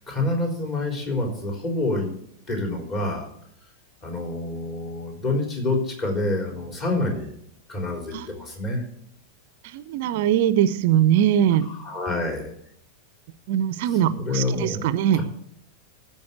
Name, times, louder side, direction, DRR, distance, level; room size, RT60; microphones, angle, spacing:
voice 1, 0.0-2.1 2.5-3.3 4.0-7.3 7.7-8.8 11.6-12.5 13.9-15.2, left 2 dB, 30° left, 1 dB, 3.7 m, -27 dB
voice 2, 9.7-11.7 13.5-15.2, right 10 dB, 50° right, 14 dB, 0.6 m, -21 dB
13.5 x 5.4 x 8.0 m, 0.67 s
figure-of-eight pair, 90°, 0 cm